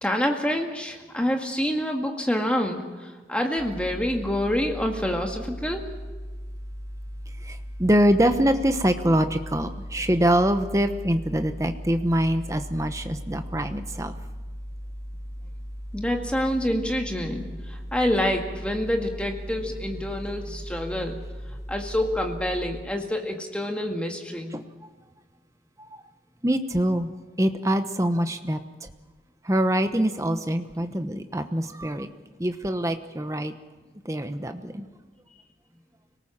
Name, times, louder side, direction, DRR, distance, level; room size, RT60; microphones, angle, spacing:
voice 1, 0.0-5.9 15.9-21.2 21.7-24.5, left 1 dB, 5° left, 2 dB, 2.0 m, -27 dB
sound 1, 3.6-22.8, equal, 70° left, 2.6 m, -38 dB
voice 2, 7.4-14.1 24.5-24.6 26.4-27.1 27.4-28.6 29.4-32.1 32.4-33.5 34.0-34.9, right 1 dB, 15° right, 8 dB, 1.0 m, -24 dB
25.5 x 18.5 x 7.3 m, 1.3 s
head